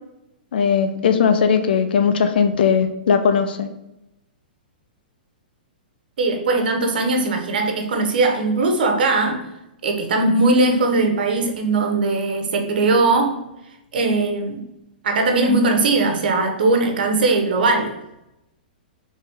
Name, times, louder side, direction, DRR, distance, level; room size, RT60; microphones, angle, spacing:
voice 1, 0.5-3.7, left 6 dB, 75° left, 0.4 m, -18 dB
voice 2, 6.2-9.5 9.8-13.4 13.9-14.7 15.0-18.0, right 3 dB, 70° right, 0.7 m, -19 dB
3.2 x 2.9 x 3.4 m
hypercardioid pair, 125°, 5 cm